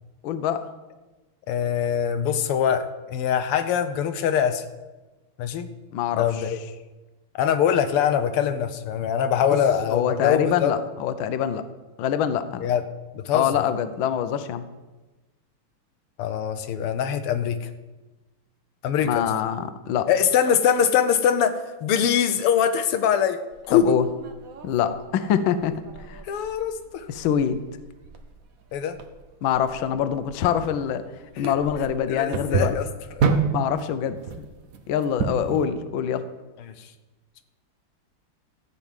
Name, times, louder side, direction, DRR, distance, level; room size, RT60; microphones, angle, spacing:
voice 1, 0.2-0.6 5.9-6.2 9.9-11.6 12.0-12.6 13.3-14.6 19.0-20.1 23.7-24.0 24.6-25.7 26.1-26.2 27.1-27.6 29.4-31.0 31.4-32.8 33.5-34.5 34.9-36.2, left 9 dB, 70° left, 11 dB, 1.5 m, -24 dB
voice 2, 1.5-4.6 5.4-5.7 6.1-6.6 7.4-10.8 12.6-12.8 13.1-13.6 16.2-17.7 18.8-19.3 20.1-23.4 23.7-23.9 26.3-27.1 28.7-29.0 31.4-31.5 32.1-32.9 33.2-33.3 36.6-36.9, left 8 dB, 90° left, 9 dB, 1.8 m, -23 dB
sound 1, 23.5-35.6, right 5 dB, 50° right, 1.2 m, -31 dB
14.0 x 5.5 x 9.0 m, 1.2 s
omnidirectional pair, 2.4 m